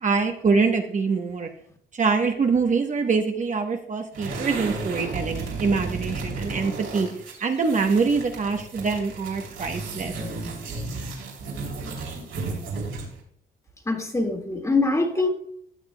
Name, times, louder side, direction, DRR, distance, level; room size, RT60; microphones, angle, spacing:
voice 1, 0.0-1.5 1.9-7.1 7.4-10.1, right 4 dB, 40° right, 4 dB, 0.9 m, -24 dB
sound 1, 4.1-13.2, right 3 dB, 75° right, 3.1 m, -33 dB
voice 2, 13.9-15.3, left 3 dB, 15° left, 3 dB, 1.8 m, -23 dB
15.0 x 6.6 x 2.2 m, 0.66 s
cardioid pair, 90°, 20 cm